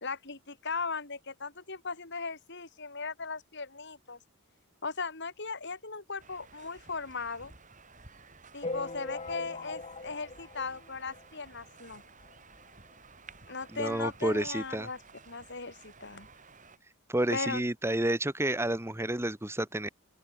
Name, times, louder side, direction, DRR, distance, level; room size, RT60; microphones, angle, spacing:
voice 1, 0.0-4.2 4.8-7.5 8.5-12.0 13.5-15.0 15.3-16.3 17.3-17.6, left 4 dB, 55° left, 3.3 m, -38 dB
sound 1, 6.2-16.8, right 4 dB, 35° right, 7.9 m, -55 dB
sound 2, 8.6-11.5 12.0-12.1 12.2-12.4 12.7-12.8 13.6-13.7 14.2-14.3, left 3 dB, 30° left, 1.3 m, -40 dB
voice 2, 13.7-14.9 17.1-19.9, right 1 dB, 10° right, 1.2 m, -30 dB
open air
head